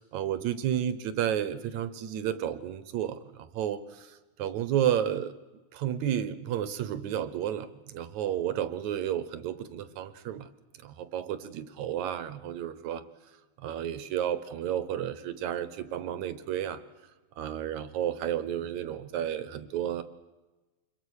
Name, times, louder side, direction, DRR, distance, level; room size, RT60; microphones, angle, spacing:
voice 1, 0.0-5.3 5.7-10.5 10.8-13.0 13.6-16.8 17.4-20.0, right 10 dB, 70° right, 14 dB, 2.3 m, -32 dB
27.0 x 22.5 x 6.5 m, 1.1 s
omnidirectional pair, 3.5 m